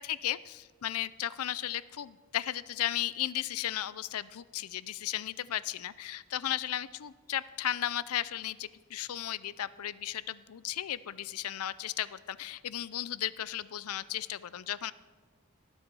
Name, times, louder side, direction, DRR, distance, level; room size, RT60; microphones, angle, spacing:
voice 1, 0.0-14.9, left 12 dB, 70° left, 18 dB, 0.4 m, -35 dB
18.5 x 7.1 x 5.4 m, 1.4 s
head